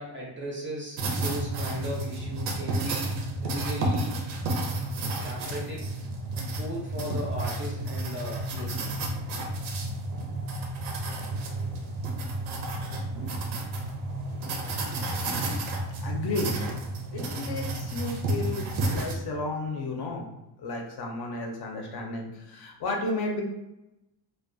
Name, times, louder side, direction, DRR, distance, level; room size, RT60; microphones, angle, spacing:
voice 1, 0.0-4.2 5.2-6.0 6.4-8.9, equal, 30° right, -3 dB, 0.4 m, -37 dB
Writing with pencil, 1.0-19.1, right 2 dB, 90° right, 0.6 m, -31 dB
voice 2, 16.0-16.6 17.1-20.3 20.6-23.4, left 2 dB, 55° left, 1 dB, 0.5 m, -33 dB
2.3 x 2.2 x 2.5 m, 0.91 s
cardioid pair, 145°, 46 cm